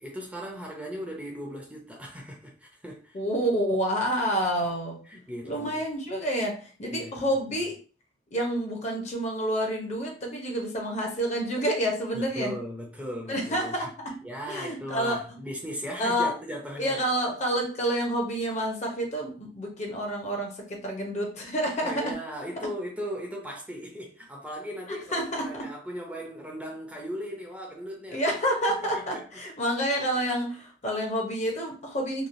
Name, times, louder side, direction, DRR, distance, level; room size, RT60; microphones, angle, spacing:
voice 1, 0.0-3.2 5.1-5.8 6.9-7.3 12.1-13.9 14.2-17.0 21.8-28.4 28.9-29.2, equal, 5° right, 0.5 m, -38 dB
voice 2, 3.1-5.0 5.4-7.8 8.3-12.6 13.3-15.2 16.0-16.3 16.8-22.2 24.9-25.7 28.1-32.3, equal, 40° left, 0.7 m, -29 dB
3.0 x 2.2 x 2.6 m
head